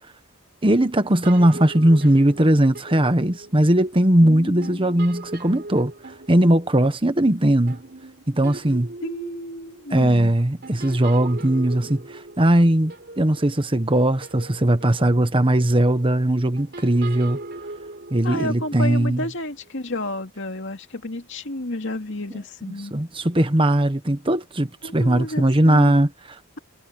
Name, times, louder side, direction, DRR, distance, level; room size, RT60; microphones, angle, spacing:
voice 1, 0.6-7.8 8.3-8.9 9.9-17.4 18.1-19.2 22.9-26.6, right 1 dB, 25° right, 1.2 m, -19 dB
sound 1, 0.7-4.2 4.6-14.0 14.2-19.4, right 2 dB, 50° right, 4.3 m, -40 dB
voice 2, 4.2-4.8 9.0-10.3 18.2-22.9 24.8-26.0, left 1 dB, 60° left, 2.6 m, -31 dB
head